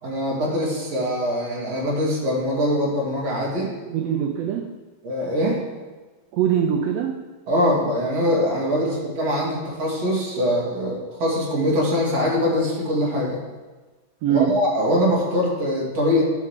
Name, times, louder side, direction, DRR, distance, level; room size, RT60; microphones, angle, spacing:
voice 1, 0.0-3.7 5.0-5.6 7.5-13.4 14.3-16.2, equal, 55° right, -4 dB, 3.4 m, -23 dB
voice 2, 3.9-4.7 6.3-7.2 8.7-8.9 14.2-14.6, right 9 dB, 85° right, 4 dB, 1.4 m, -23 dB
11.0 x 5.2 x 6.7 m, 1.3 s
omnidirectional pair, 3.7 m